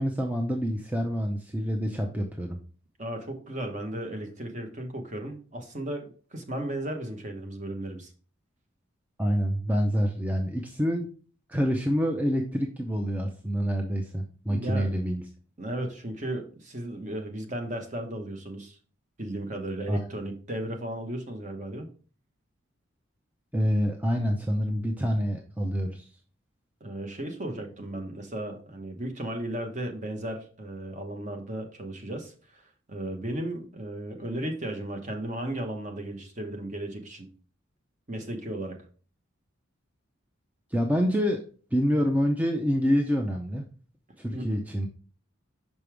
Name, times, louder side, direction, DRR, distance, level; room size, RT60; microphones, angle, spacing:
voice 1, 0.0-2.6 9.2-11.1 11.5-15.2 19.9-20.1 23.5-26.1 40.7-41.4 41.7-43.7 44.2-44.9, equal, 10° right, 2 dB, 0.5 m, -27 dB
voice 2, 3.0-8.1 14.5-14.9 15.6-18.8 19.2-21.9 26.8-32.6 32.9-37.3 38.1-38.8 44.3-44.6, right 1 dB, 35° right, 4 dB, 1.1 m, -35 dB
5.9 x 5.3 x 3.3 m, 0.39 s
head